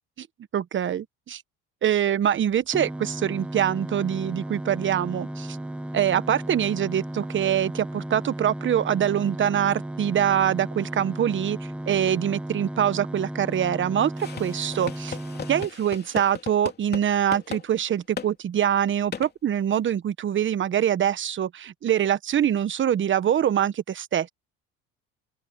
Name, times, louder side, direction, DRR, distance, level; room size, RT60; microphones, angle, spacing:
voice 1, 0.5-1.4 1.8-5.6 5.9-14.1 14.4-15.2 15.5-24.3, right 10 dB, 40° right, 1.2 m, -24 dB
sound 1, 2.7-15.7, right 1 dB, 5° right, 1.6 m, -35 dB
sound 2, 14.2-17.0 17.3-17.6 18.2-18.3 19.1-19.3, left 6 dB, 35° left, 3.0 m, -36 dB
open air
supercardioid pair, 105°, 30 cm